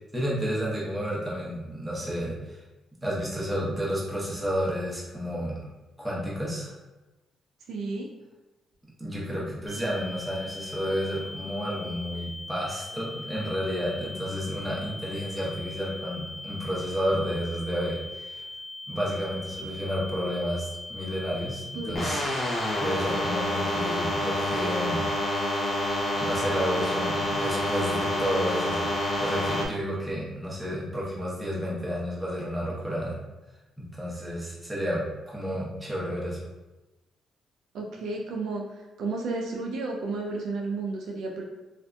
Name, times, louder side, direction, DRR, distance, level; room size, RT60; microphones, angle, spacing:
voice 1, 0.1-2.6 3.0-5.6 6.0-6.8 9.0-18.4 18.9-22.2 22.8-25.1 26.2-28.9 29.2-33.2 33.8-36.4, equal, 10° right, -6 dB, 0.9 m, -31 dB
voice 2, 7.7-8.1 21.7-22.0 37.7-38.6 39.0-41.4, right 3 dB, 75° right, -1 dB, 0.4 m, -32 dB
sound 1, 9.7-29.7, left 2 dB, 10° left, 1.3 m, -41 dB
sound 2, 21.9-29.6, left 1 dB, 35° left, 0.7 m, -28 dB
2.7 x 2.4 x 2.3 m, 1.1 s
cardioid pair, 90°, 0 cm